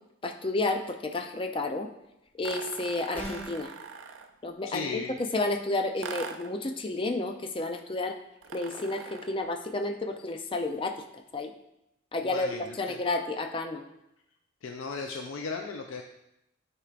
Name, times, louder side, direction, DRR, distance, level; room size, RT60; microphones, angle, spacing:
voice 1, 0.2-1.9 2.4-3.7 4.4-4.9 5.2-8.2 8.5-11.0 11.3-11.5 12.1-13.8, left 2 dB, 25° left, 5 dB, 0.4 m, -31 dB
sound 1, 2.4-4.4 6.0-6.6 8.4-9.4, right 5 dB, 75° right, 0.5 m, -42 dB
sound 2, 3.1-3.7, right 1 dB, 10° left, 1.0 m, -38 dB
voice 2, 4.6-5.2 12.2-13.0 14.6-16.0, left 4 dB, 85° left, 3 dB, 0.4 m, -36 dB
9.8 x 4.6 x 2.5 m, 0.84 s
head